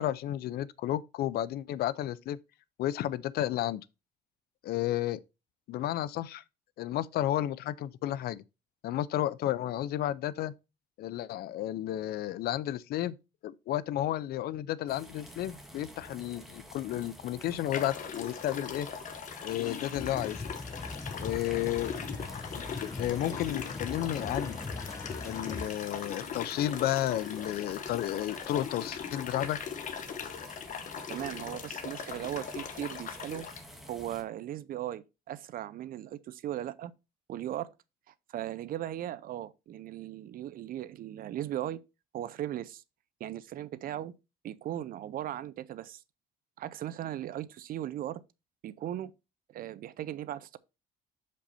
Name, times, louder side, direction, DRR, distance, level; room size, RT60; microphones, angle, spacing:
voice 1, 0.0-2.4 2.8-3.8 4.6-5.2 5.7-6.4 6.8-8.4 8.8-10.5 11.0-13.2 13.4-18.9 19.4-20.4 21.2-21.9 22.6-24.6 25.2-29.6, left 13 dB, 65° left, 0.5 m, -32 dB
sound 1, 14.9-34.2, equal, ahead, 1.9 m, -50 dB
sound 2, 16.9-17.1 17.7-33.6, left 7 dB, 50° left, 1.0 m, -40 dB
sound 3, 19.9-25.7, left 3 dB, 20° left, 0.8 m, -40 dB
voice 2, 31.1-33.5 33.9-36.9 37.3-37.7 38.1-41.8 42.1-42.8 43.2-44.1 44.4-46.0 46.6-48.2 48.6-49.1 49.5-50.6, right 12 dB, 60° right, 0.6 m, -38 dB
6.7 x 5.3 x 4.2 m
cardioid pair, 110°, 17 cm